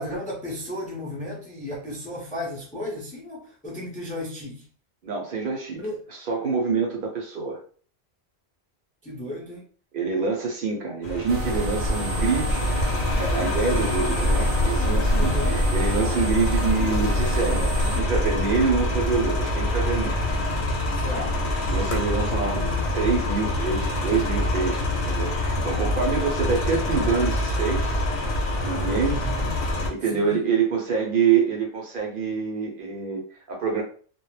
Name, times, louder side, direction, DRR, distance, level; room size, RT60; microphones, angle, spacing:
voice 1, 0.0-4.6 5.7-6.0 9.0-9.6 15.2-15.6 21.0-21.3 29.0-29.5 30.1-30.4, left 1 dB, 10° left, -3 dB, 0.5 m, -34 dB
voice 2, 5.0-5.8 6.1-7.6 9.9-12.6 13.2-20.3 21.1-21.3 21.7-28.1 28.6-29.3 29.9-33.8, right 5 dB, 60° right, -1 dB, 0.7 m, -26 dB
sound 1, 11.0-29.9, left 1 dB, 75° left, 0.9 m, -25 dB
sound 2, 11.3-18.0, right 1 dB, 85° right, 0.9 m, -28 dB
2.2 x 2.0 x 3.1 m, 0.43 s
omnidirectional pair, 1.1 m